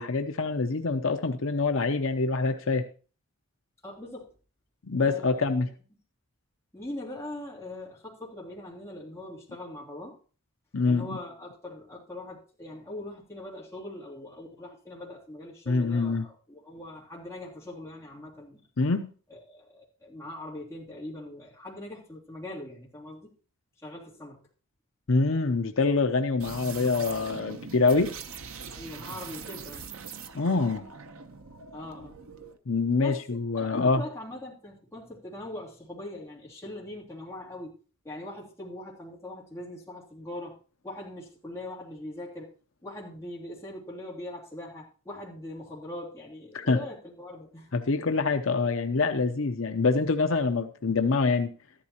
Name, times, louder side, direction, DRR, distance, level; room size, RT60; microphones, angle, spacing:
voice 1, 0.0-2.9 4.8-5.7 10.7-11.1 15.7-16.3 18.8-19.1 25.1-28.2 30.3-30.8 32.7-34.0 46.5-46.8 47.7-51.5, left 3 dB, 65° left, 7 dB, 0.7 m, -25 dB
voice 2, 3.8-4.3 5.1-5.6 6.7-10.2 10.8-18.6 19.3-23.3 23.8-24.4 28.7-29.8 31.7-32.2 33.0-37.7 38.0-40.6 40.8-42.5 42.8-47.8, left 1 dB, 15° left, -5 dB, 2.8 m, -41 dB
sound 1, 26.4-32.6, right 5 dB, 75° right, 0.9 m, -42 dB
14.0 x 11.5 x 2.9 m, 0.37 s
head